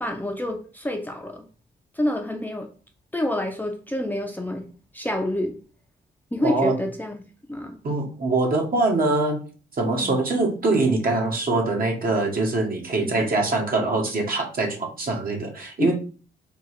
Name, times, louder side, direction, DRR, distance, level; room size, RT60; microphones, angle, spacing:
voice 1, 0.0-1.4 1.9-2.7 3.1-4.7 4.9-5.6 6.3-7.2 7.5-7.8 9.9-10.2 13.0-13.2 15.8-15.9, left 1 dB, 10° left, 3 dB, 0.6 m, -27 dB
voice 2, 6.4-6.8 7.8-9.4 9.8-15.9, right 2 dB, 50° right, 1 dB, 1.4 m, -23 dB
3.7 x 2.4 x 4.6 m, 0.38 s
cardioid pair, 75°, 20 cm